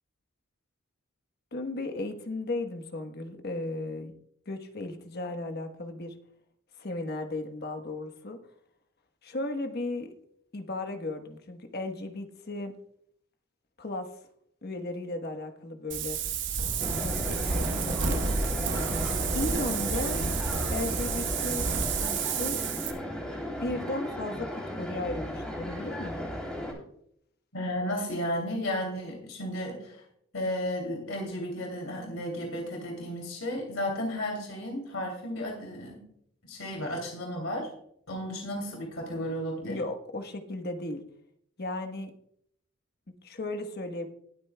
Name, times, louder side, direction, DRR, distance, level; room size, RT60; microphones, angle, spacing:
voice 1, 1.5-4.1 4.5-6.1 6.8-8.4 9.2-10.1 10.5-12.8 13.8-14.1 14.6-16.2 16.8-18.2 19.3-20.2 20.7-21.7 22.0-22.6 23.6-26.3 39.6-41.0 41.6-42.1 43.2-44.1, left 2 dB, 50° left, 6 dB, 1.2 m, -35 dB
Wind, 15.9-22.9, right 5 dB, 60° right, 1.1 m, -30 dB
sound 1, 16.8-26.7, equal, 5° left, 3.1 m, -36 dB
voice 2, 27.5-30.0 30.3-36.0 36.4-37.7 38.1-39.8, left 1 dB, 80° left, 1 dB, 2.8 m, -33 dB
20.5 x 8.4 x 2.2 m, 0.70 s
head